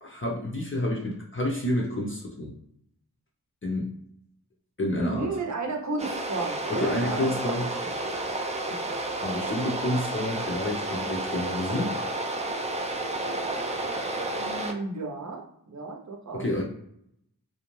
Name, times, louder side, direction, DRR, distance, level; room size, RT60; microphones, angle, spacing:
voice 1, 0.0-2.5 3.6-4.0 4.8-5.3 6.7-7.7 9.2-12.0 16.3-16.6, left 1 dB, 30° left, -3 dB, 0.6 m, -29 dB
voice 2, 5.0-7.3 7.8-7.9 14.4-16.5, right 3 dB, 45° right, 1 dB, 0.7 m, -33 dB
sound 1, 6.0-14.7, right 2 dB, 20° right, 0.4 m, -31 dB
2.5 x 2.1 x 3.0 m, 0.73 s
wide cardioid pair, 50°, 39 cm